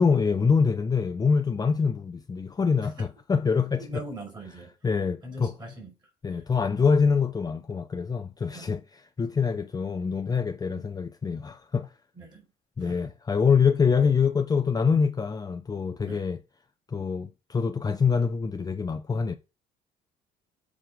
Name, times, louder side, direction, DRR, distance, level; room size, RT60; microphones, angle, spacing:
voice 1, 0.0-4.0 4.8-5.5 6.2-8.8 9.2-11.9 12.8-16.4 16.9-19.3, left 5 dB, 20° left, 0.6 m, -25 dB
voice 2, 3.8-4.7 5.2-5.9 6.3-6.4 8.5-8.7 12.2-12.5 12.8-13.1 16.0-16.2, right 1 dB, 25° right, 5.5 m, -42 dB
7.5 x 5.0 x 5.0 m
cardioid pair, 110°, 17 cm